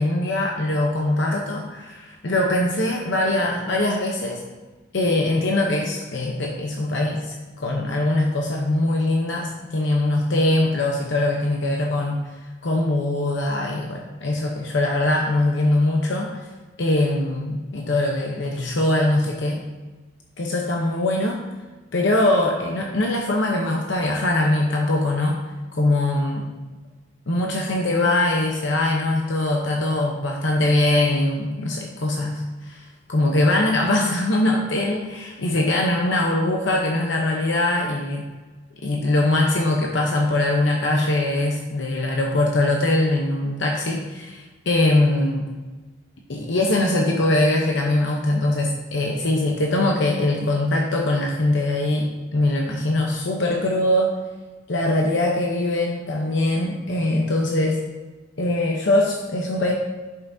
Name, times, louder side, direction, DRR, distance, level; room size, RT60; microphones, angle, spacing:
voice 1, 0.0-4.4 4.9-12.2 12.6-16.4 16.8-19.6 20.4-21.4 21.9-25.4 25.7-26.5 27.3-38.2 38.8-45.5 46.3-54.2 54.7-57.8 58.4-59.7, left 1 dB, 60° left, 0 dB, 0.8 m, -22 dB
10.5 x 5.7 x 2.7 m, 1.2 s
head